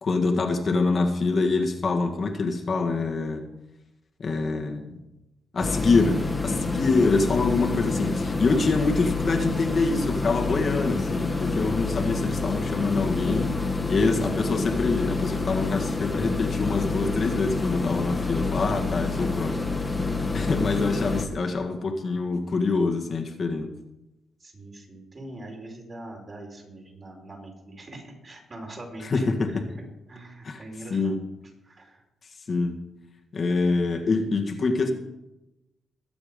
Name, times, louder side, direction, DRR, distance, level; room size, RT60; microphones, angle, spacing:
voice 1, 0.0-3.5 4.2-5.0 5.5-13.6 13.9-19.6 20.3-23.7 29.0-29.7 30.4-30.6 30.9-31.2 32.5-32.8 33.3-34.9, left 3 dB, 45° left, 2 dB, 1.8 m, -25 dB
sound 1, 5.6-21.3, left 3 dB, 15° left, 1.8 m, -27 dB
voice 2, 24.4-31.1 31.6-32.0, right 1 dB, 40° right, 0 dB, 4.7 m, -43 dB
21.5 x 7.3 x 5.3 m, 0.97 s
cardioid pair, 85°, 0 cm